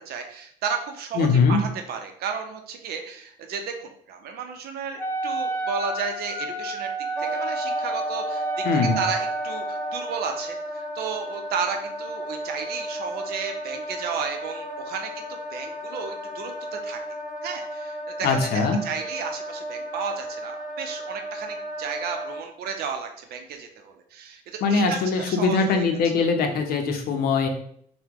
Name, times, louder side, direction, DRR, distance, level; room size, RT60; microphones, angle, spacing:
voice 1, 0.0-6.9 7.2-17.0 17.4-25.9, right 6 dB, 70° right, 5 dB, 0.6 m, -33 dB
voice 2, 1.2-1.6 8.6-9.0 18.2-18.8 24.6-27.5, left 4 dB, 65° left, 4 dB, 0.6 m, -22 dB
Wind instrument woodwind instrument, 5.0-10.0, right 2 dB, 10° left, 0.6 m, -29 dB
Wind instrument woodwind instrument 2, 7.1-22.4, equal, 5° right, 1.4 m, -34 dB
2.8 x 2.1 x 3.5 m, 0.65 s
cardioid pair, 110°, 17 cm